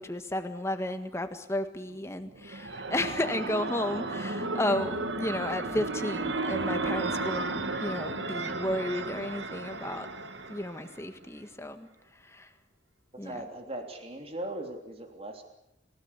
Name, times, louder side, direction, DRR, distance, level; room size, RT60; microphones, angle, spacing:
voice 1, 0.0-10.1 10.5-11.9 12.2-12.5 13.2-13.4, left 1 dB, 15° left, 8 dB, 1.7 m, -33 dB
sound 1, 2.3-11.1, right 3 dB, 75° right, 1.8 m, -34 dB
sound 2, 2.9-7.9, equal, 70° left, 1.7 m, -46 dB
voice 2, 13.2-15.4, right 1 dB, 30° right, 4 dB, 3.2 m, -39 dB
28.5 x 17.0 x 8.4 m, 0.83 s
head